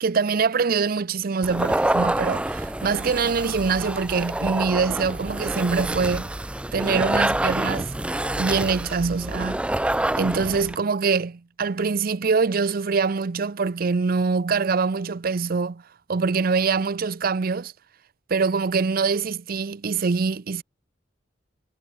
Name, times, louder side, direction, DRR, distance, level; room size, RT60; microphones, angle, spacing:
voice 1, 0.0-6.3 6.7-7.9 8.4-9.7 10.2-15.8 16.1-17.7 18.3-20.6, right 5 dB, 55° right, 0.6 m, -24 dB
sound 1, 1.4-10.8, right 1 dB, 5° right, 0.4 m, -27 dB
head